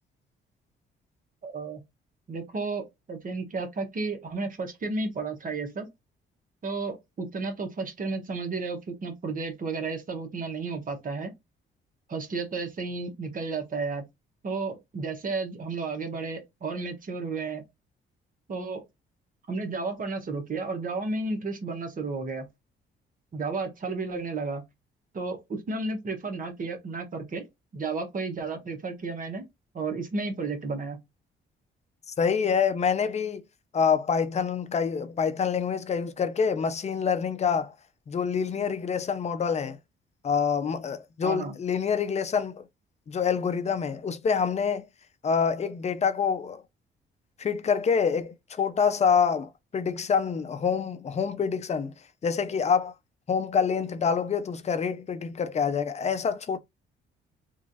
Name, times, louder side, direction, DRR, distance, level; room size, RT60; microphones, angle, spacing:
voice 1, 1.4-1.8 2.3-5.9 6.6-11.3 12.1-14.0 14.4-17.6 18.5-18.8 19.5-22.5 23.3-24.6 25.1-27.4 27.7-29.4 29.7-31.0 41.2-41.5, right 3 dB, 45° right, 1.0 m, -32 dB
voice 2, 32.2-33.4 33.7-37.7 38.1-39.8 40.2-42.6 43.1-44.9 45.2-46.6 47.4-51.9 52.2-52.9 53.3-56.6, left 6 dB, 35° left, 0.5 m, -26 dB
3.1 x 2.4 x 2.6 m
cardioid pair, 90°, 20 cm